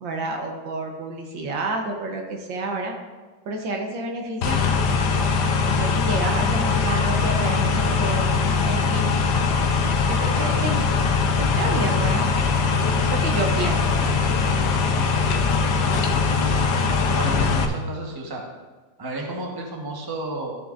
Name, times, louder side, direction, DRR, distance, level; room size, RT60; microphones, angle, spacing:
voice 1, 0.0-2.9 3.5-4.6 5.6-8.3 8.6-9.2 10.0-10.8 11.4-12.3 13.0-14.1, right 2 dB, 70° right, 2 dB, 1.6 m, -29 dB
sound 1, 4.4-17.7, left 4 dB, 65° left, 1.2 m, -21 dB
voice 2, 16.4-16.7 17.0-18.4 19.0-20.5, right 2 dB, 15° right, -1 dB, 0.9 m, -32 dB
13.5 x 6.7 x 2.6 m, 1.3 s
omnidirectional pair, 2.2 m